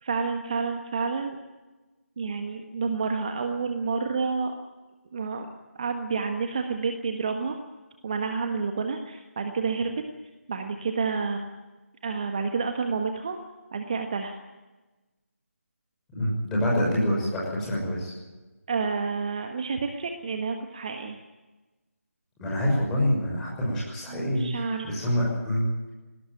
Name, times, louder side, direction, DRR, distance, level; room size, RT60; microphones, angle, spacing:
voice 1, 0.0-1.4 2.2-4.5 5.1-5.5 5.7-7.6 8.0-10.0 10.5-11.4 12.0-13.4 13.7-14.4 18.7-21.2 24.1-25.0, right 5 dB, 30° right, 5 dB, 1.4 m, -29 dB
voice 2, 16.1-18.1 22.4-25.6, equal, 5° left, -5 dB, 6.2 m, -26 dB
19.0 x 18.5 x 9.2 m, 1.2 s
figure-of-eight pair, 160°, 8 cm